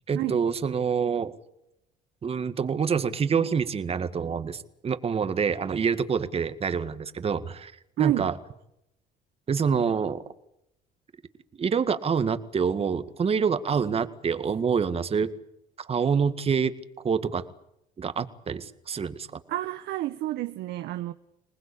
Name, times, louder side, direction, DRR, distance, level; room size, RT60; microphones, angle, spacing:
voice 1, 0.1-1.3 2.2-7.7 8.0-8.3 9.5-10.2 11.6-15.3 15.8-16.7 17.0-17.4 18.0-19.4, right 6 dB, 35° right, 1.9 m, -26 dB
voice 2, 8.0-8.3 19.5-21.1, right 15 dB, 80° right, 1.0 m, -29 dB
27.0 x 19.5 x 8.5 m
cardioid pair, 110°, 17 cm